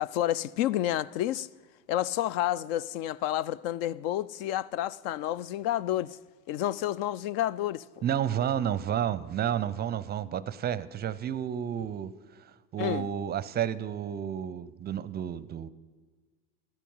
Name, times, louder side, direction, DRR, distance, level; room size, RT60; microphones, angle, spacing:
voice 1, 0.0-1.5 1.9-6.2 6.5-7.8 12.8-13.1, left 13 dB, 55° left, 0.5 m, -30 dB
voice 2, 8.0-12.1 12.7-15.7, right 9 dB, 30° right, 0.6 m, -31 dB
13.5 x 13.0 x 5.5 m
hypercardioid pair, 80°, 35 cm